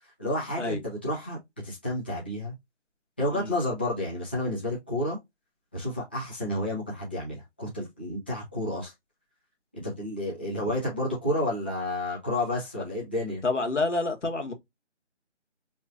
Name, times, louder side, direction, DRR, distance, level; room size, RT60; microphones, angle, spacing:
voice 1, 0.2-1.4 1.6-2.5 3.2-5.2 5.7-8.9 9.8-13.4, left 1 dB, 10° left, 0.8 m, -30 dB
voice 2, 13.4-14.5, left 3 dB, 80° left, 1.7 m, -28 dB
5.4 x 3.2 x 2.4 m
figure-of-eight pair, 165°, 35 cm